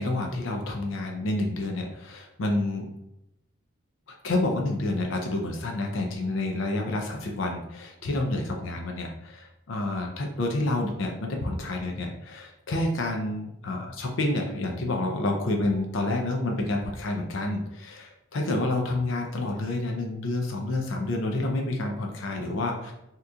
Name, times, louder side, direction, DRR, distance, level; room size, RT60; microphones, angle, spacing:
voice 1, 0.0-2.9 4.2-22.9, left 2 dB, 65° left, 2 dB, 0.5 m, -29 dB
2.8 x 2.3 x 3.7 m, 0.86 s
head